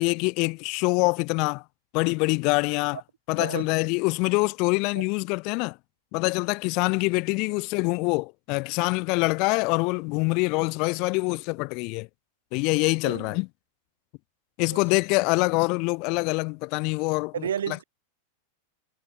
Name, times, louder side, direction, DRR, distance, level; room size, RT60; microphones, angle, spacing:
voice 1, 0.0-1.6 1.9-3.0 3.3-5.8 6.1-12.1 12.5-13.5 14.6-17.5, left 30 dB, 45° left, 1.1 m, -25 dB
voice 2, 13.0-13.4 14.7-14.8 17.3-17.8, right 9 dB, 65° right, 4.7 m, -31 dB
figure-of-eight pair, 90°, 0 cm